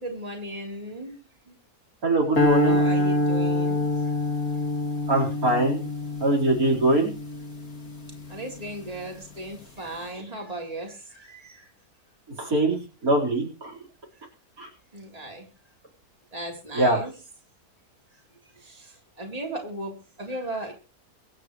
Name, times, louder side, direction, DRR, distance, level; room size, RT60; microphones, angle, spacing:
voice 1, 0.0-1.5 2.6-3.9 5.1-5.3 8.3-11.7 14.9-15.5 16.3-17.1 18.6-20.7, right 1 dB, 25° right, 0 dB, 3.8 m, -36 dB
voice 2, 2.0-2.8 5.1-5.8 6.2-7.1 12.4-13.7 14.6-14.7 16.7-17.0, right 2 dB, 65° right, -1 dB, 5.0 m, -23 dB
sound 1, 2.4-8.7, left 2 dB, 65° left, 3.2 m, -26 dB
24.5 x 9.9 x 3.2 m, 0.33 s
omnidirectional pair, 1.6 m